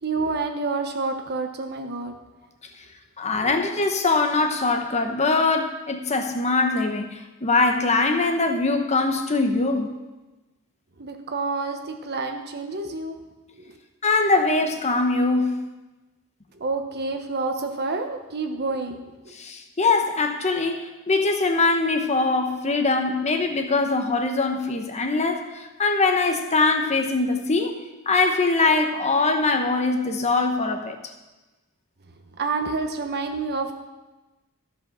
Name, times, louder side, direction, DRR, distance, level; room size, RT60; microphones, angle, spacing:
voice 1, 0.0-2.2 3.4-3.5 11.0-13.2 13.6-13.7 16.5-19.3 32.4-33.7, right 3 dB, 50° right, 5 dB, 1.1 m, -28 dB
voice 2, 3.2-9.9 14.0-15.6 19.3-31.0, left 3 dB, 30° left, 5 dB, 0.9 m, -22 dB
13.5 x 5.7 x 6.2 m, 1.1 s
head